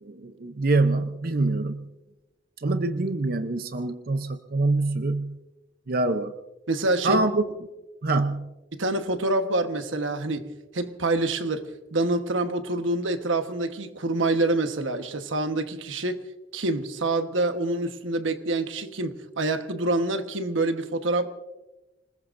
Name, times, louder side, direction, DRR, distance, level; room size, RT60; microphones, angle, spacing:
voice 1, 0.0-1.9 2.6-5.4 5.9-6.3 7.0-7.4 8.0-8.5, right 2 dB, 50° right, 0.7 m, -25 dB
voice 2, 6.7-7.2 8.1-8.2 8.7-16.2 16.5-21.3, right 2 dB, 90° right, 1.2 m, -26 dB
26.5 x 20.0 x 2.6 m
head